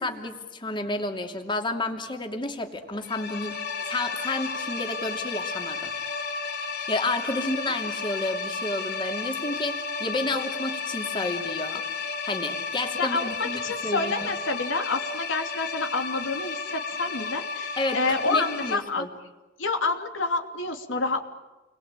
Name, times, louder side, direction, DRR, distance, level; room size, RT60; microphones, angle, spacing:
voice 1, 0.0-5.9 6.6-11.8 12.2-14.3 17.8-19.1, left 2 dB, 25° left, 4 dB, 2.8 m, -31 dB
sound 1, 3.0-18.7, left 4 dB, 60° left, 3.7 m, -33 dB
voice 2, 13.0-19.1 19.6-21.2, left 3 dB, 85° left, 5 dB, 2.8 m, -28 dB
29.5 x 22.0 x 9.0 m, 1.1 s
head